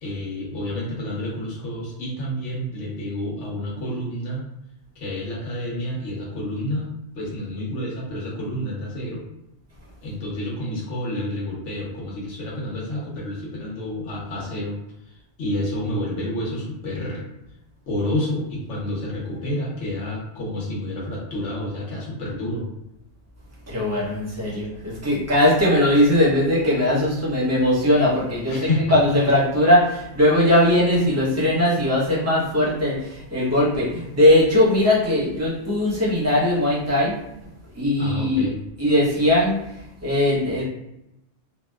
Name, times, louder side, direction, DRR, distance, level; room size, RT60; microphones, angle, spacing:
voice 1, 0.0-4.4 5.0-6.9 7.1-9.2 10.0-14.8 15.4-17.2 17.9-22.6 24.5-24.6 28.5-28.9 38.0-38.6, left 1 dB, 75° left, -4 dB, 1.1 m, -29 dB
voice 2, 23.7-37.1 37.7-38.5 38.8-39.6 40.0-40.6, left 1 dB, 15° right, -7 dB, 0.6 m, -19 dB
2.8 x 2.1 x 2.2 m, 0.88 s
omnidirectional pair, 1.3 m